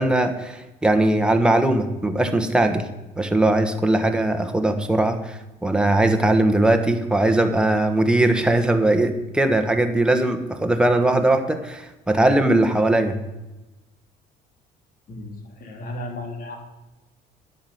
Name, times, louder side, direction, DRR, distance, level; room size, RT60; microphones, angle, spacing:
voice 1, 0.0-2.8 3.2-13.2, right 1 dB, 5° right, 5 dB, 1.4 m, -20 dB
voice 2, 15.1-16.6, left 1 dB, 60° left, 3 dB, 3.1 m, -34 dB
10.0 x 6.8 x 9.2 m, 1.0 s
cardioid pair, 110°, 17 cm